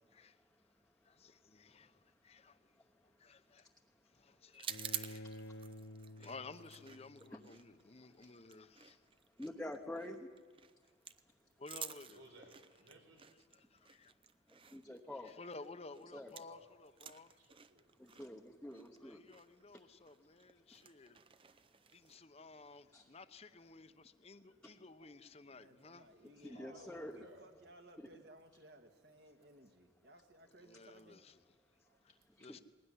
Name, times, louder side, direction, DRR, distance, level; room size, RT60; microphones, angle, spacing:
voice 1, 0.1-0.4 1.0-3.7 4.0-5.3 6.2-9.1 10.8-10.9 11.6-12.2 13.5-14.1 15.0-17.5 19.0-21.2 21.9-26.1 26.4-26.5 30.6-31.6 32.0-32.6, left 3 dB, 35° left, 0.8 m, -55 dB
sound 1, 4.5-16.6 16.9-22.2, right 8 dB, 30° right, 0.7 m, -51 dB
Bowed string instrument, 4.7-7.7, left 1 dB, 60° left, 1.2 m, -51 dB
voice 2, 9.4-10.3 14.5-15.3 16.1-16.3 18.0-19.2 22.9-23.0 26.4-27.2 28.0-28.1 32.4-32.6, left 1 dB, 5° left, 1.0 m, -47 dB
voice 3, 12.1-13.2 16.5-16.7 17.4-17.9 24.4-24.7 25.0-25.1 26.4-27.6 31.7-32.0, right 1 dB, 85° right, 5.0 m, -61 dB
voice 4, 25.5-31.2, right 1 dB, 60° right, 1.9 m, -60 dB
20.5 x 19.0 x 9.9 m
head